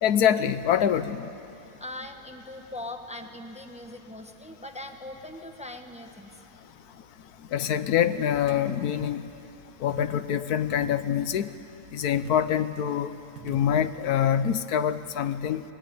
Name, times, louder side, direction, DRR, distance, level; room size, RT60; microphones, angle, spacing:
voice 1, 0.0-1.3 7.5-9.2 9.8-11.5 11.9-13.1 13.4-15.6, left 9 dB, 80° left, 12 dB, 1.3 m, -25 dB
voice 2, 1.8-6.3, left 1 dB, 5° right, 5 dB, 1.2 m, -40 dB
sound 1, 8.0-8.7 9.0-9.3 9.9-10.4 10.7-11.6 12.1-12.8 13.4-14.1, right 5 dB, 85° right, 1.9 m, -46 dB
25.0 x 20.5 x 9.4 m, 2.9 s
omnidirectional pair, 1.6 m